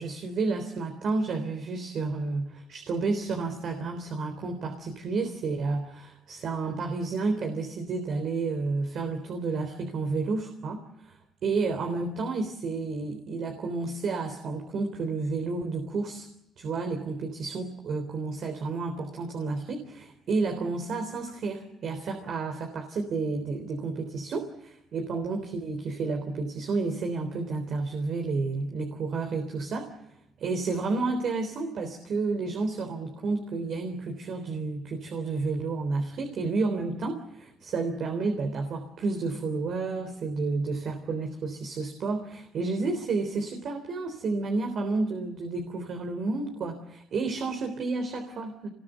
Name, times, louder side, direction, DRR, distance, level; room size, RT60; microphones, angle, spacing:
voice 1, 0.0-11.2 11.4-16.3 16.6-29.9 30.4-48.7, right 3 dB, 65° right, 5 dB, 3.6 m, -31 dB
25.0 x 20.5 x 8.1 m, 0.84 s
cardioid pair, 90°, 0 cm